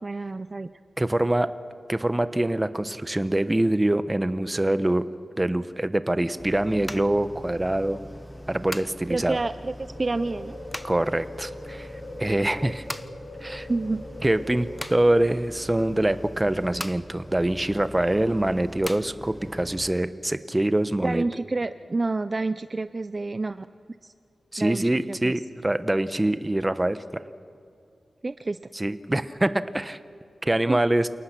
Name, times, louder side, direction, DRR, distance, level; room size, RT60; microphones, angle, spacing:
voice 1, 0.0-0.7 9.1-10.6 13.7-14.0 21.0-23.7 24.0-24.1 24.6-25.4 28.2-28.6 30.7-30.8, right 3 dB, 40° right, 12 dB, 0.5 m, -29 dB
voice 2, 1.0-1.5 1.9-5.0 5.4-8.0 8.5-9.4 10.8-11.9 12.2-12.8 13.4-13.7 14.2-21.2 24.5-27.2 28.7-30.0 30.4-31.1, right 1 dB, 20° right, 12 dB, 1.0 m, -24 dB
sound 1, 6.4-19.9, equal, 10° left, 0.8 m, -41 dB
sound 2, 9.8-14.8, left 1 dB, 85° left, 3.7 m, -42 dB
28.5 x 18.0 x 6.0 m, 2.6 s
cardioid pair, 65°, 0 cm